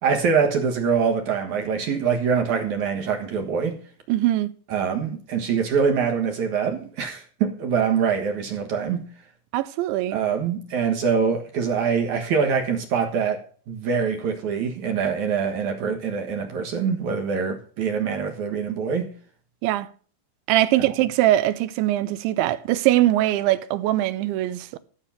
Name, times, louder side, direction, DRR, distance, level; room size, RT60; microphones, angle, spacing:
voice 1, 0.0-3.8 4.7-9.1 10.1-19.1, right 6 dB, 60° right, 2.1 m, -24 dB
voice 2, 4.1-4.5 9.5-10.2 19.6-19.9 20.5-24.8, right 14 dB, 85° right, 3.1 m, -22 dB
14.0 x 6.7 x 5.8 m
omnidirectional pair, 5.2 m